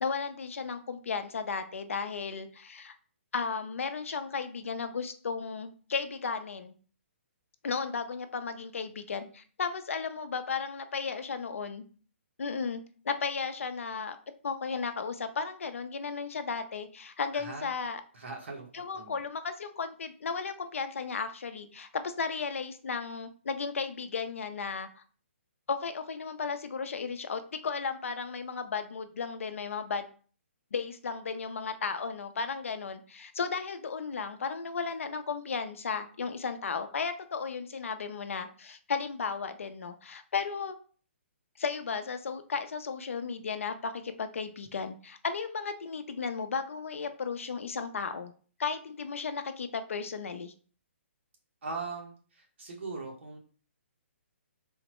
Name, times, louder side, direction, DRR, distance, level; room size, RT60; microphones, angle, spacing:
voice 1, 0.0-3.0 3.3-6.7 7.6-11.8 12.4-14.2 14.4-18.0 18.7-24.9 25.7-30.0 30.7-40.8 41.6-48.3 48.6-50.5, left 5 dB, 85° left, 9 dB, 0.5 m, -34 dB
voice 2, 17.3-17.7 18.1-18.7 18.9-19.1 51.6-53.4, right 3 dB, 60° right, 0 dB, 1.1 m, -40 dB
3.8 x 2.1 x 2.9 m, 0.42 s
hypercardioid pair, 170°, 7 cm